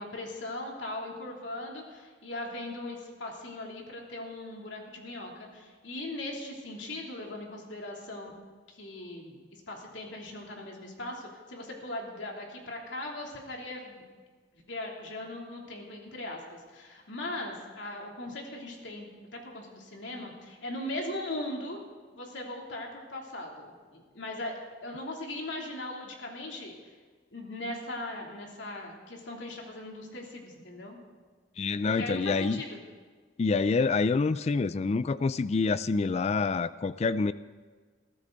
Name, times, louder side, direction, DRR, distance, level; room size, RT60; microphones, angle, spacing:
voice 1, 0.0-8.3 8.7-14.0 14.7-21.8 22.2-26.8 27.3-31.0 31.8-32.8, left 1 dB, 75° left, 0 dB, 3.0 m, -39 dB
voice 2, 31.6-32.6 33.4-37.3, left 4 dB, 35° left, 15 dB, 0.3 m, -27 dB
21.5 x 14.5 x 3.9 m, 1.5 s
head